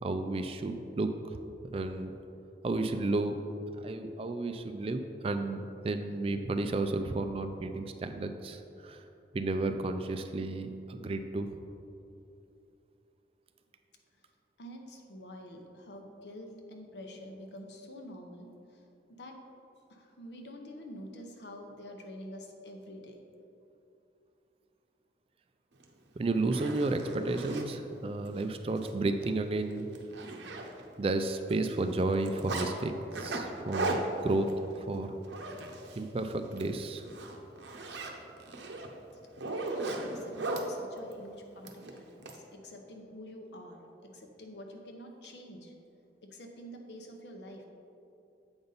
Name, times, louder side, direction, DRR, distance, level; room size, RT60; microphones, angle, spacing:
voice 1, 0.0-1.4 1.7-2.1 2.6-3.3 3.8-9.0 9.3-11.5 26.2-29.9 31.0-34.0 34.2-34.5 34.8-35.1 35.9-37.0, right 2 dB, 30° right, 7 dB, 0.3 m, -32 dB
voice 2, 14.6-18.8 19.2-19.4 19.9-23.2 40.1-45.7 46.2-47.7, equal, 70° left, 3 dB, 0.8 m, -47 dB
Zipper (clothing), 25.8-25.9 26.4-27.7 28.3-28.4 28.8-28.9 29.2-29.4 29.7-31.0 31.3-32.7 33.1-36.1 36.4-36.7 37.0-40.7 41.6-42.4, right 2 dB, 80° right, 0.8 m, -37 dB
7.9 x 5.3 x 4.0 m, 2.8 s
head